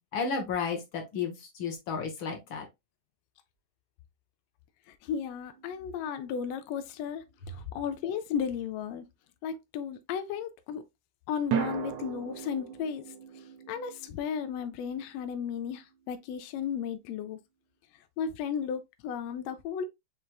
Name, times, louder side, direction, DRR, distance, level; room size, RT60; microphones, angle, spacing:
voice 1, 0.0-2.6, left 5 dB, 60° left, 1.4 m, -33 dB
voice 2, 4.9-9.0 9.4-10.8 11.3-17.4 17.9-19.8, left 7 dB, 85° left, 1.4 m, -35 dB
sound 1, 5.5-6.6 11.5-15.8, right 7 dB, 80° right, 2.4 m, -38 dB
5.9 x 3.2 x 2.2 m
omnidirectional pair, 3.4 m